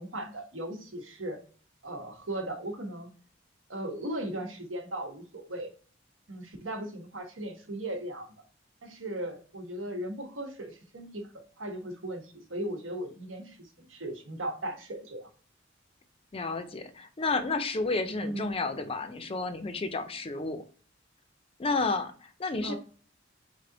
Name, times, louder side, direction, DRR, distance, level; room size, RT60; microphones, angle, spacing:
voice 1, 0.0-1.4 1.8-3.1 3.7-5.7 6.3-8.3 8.8-15.3 18.2-18.6 22.6-22.8, right 1 dB, 85° right, 3 dB, 1.2 m, -37 dB
voice 2, 16.3-20.6 21.6-22.7, left 3 dB, 30° left, 9 dB, 0.5 m, -31 dB
4.0 x 3.4 x 3.8 m, 0.41 s
head